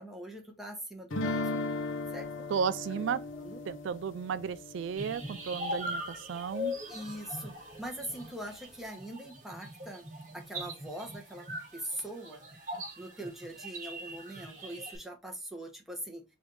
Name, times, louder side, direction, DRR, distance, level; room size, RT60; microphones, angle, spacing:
voice 1, 0.0-1.6 2.1-2.5 2.9-3.0 3.3-3.6 6.9-10.0 10.3-11.5 11.7-12.4 13.0-16.2, right 1 dB, ahead, 1.0 m, -42 dB
sound 1, 1.1-6.0, left 2 dB, 85° left, 0.7 m, -37 dB
voice 2, 2.5-3.2 3.7-6.0 6.3-6.7, right 6 dB, 70° right, 0.3 m, -33 dB
sound 2, 5.0-15.0, left 1 dB, 40° right, 1.4 m, -41 dB
4.8 x 2.7 x 3.2 m
head